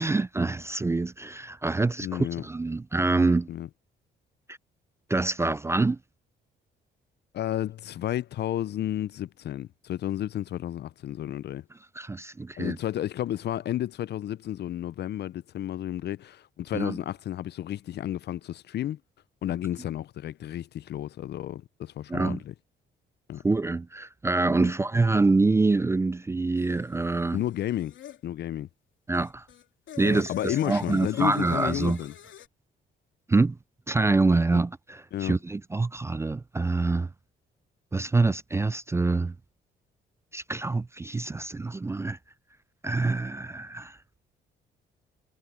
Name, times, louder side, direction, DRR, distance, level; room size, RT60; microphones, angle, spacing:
voice 1, 0.0-3.5 5.1-6.0 12.0-12.8 16.7-17.0 22.1-22.4 23.4-27.4 29.1-29.4 30.0-32.0 33.3-33.6 33.9-37.1 37.9-39.3 40.3-42.2 42.8-44.0, right 3 dB, 15° right, 0.3 m, -25 dB
voice 2, 2.0-2.4 3.5-3.7 7.3-11.6 12.6-19.0 19.4-22.5 23.3-23.4 24.6-24.7 27.3-28.0 28.2-28.7 30.0-32.1 34.5-34.6 35.1-35.3, left 12 dB, 55° left, 0.5 m, -32 dB
sound 1, 26.6-28.2 29.1-32.5, left 11 dB, 75° left, 2.9 m, -44 dB
cardioid pair, 90°, 20 cm